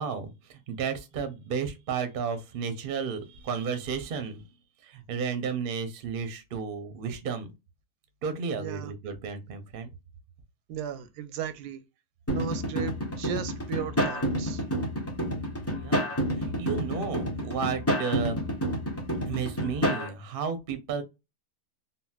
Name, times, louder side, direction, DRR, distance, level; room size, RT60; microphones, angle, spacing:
voice 1, 0.0-4.4 4.8-7.5 8.2-9.9 15.7-18.4 19.3-21.0, right 6 dB, 60° right, 0.6 m, -33 dB
voice 2, 8.6-8.9 10.7-11.8 12.3-14.6, right 8 dB, 85° right, 1.1 m, -36 dB
sound 1, 12.3-20.1, equal, 15° left, 0.5 m, -29 dB
3.8 x 2.1 x 2.3 m
omnidirectional pair, 1.7 m